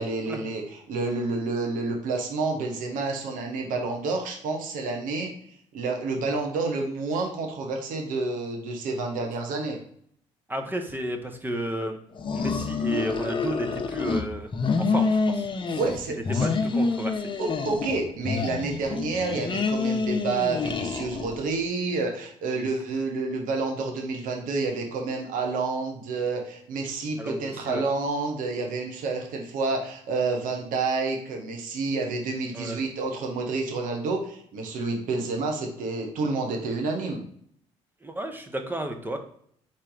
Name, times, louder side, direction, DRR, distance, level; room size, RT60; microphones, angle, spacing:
voice 1, 0.0-5.3 5.7-9.8 15.7-16.5 17.4-37.2, right 3 dB, 70° right, 2 dB, 1.1 m, -29 dB
voice 2, 10.5-12.0 12.3-14.5 14.8-15.5 16.4-17.3 22.6-22.7 27.2-27.8 32.5-32.8 38.0-39.2, right 1 dB, 15° right, 4 dB, 0.9 m, -32 dB
sound 1, 12.2-14.2 14.5-18.0 18.2-21.4, left 4 dB, 35° left, 0.7 m, -27 dB
4.1 x 3.1 x 3.9 m, 0.64 s
hypercardioid pair, 60°, 14 cm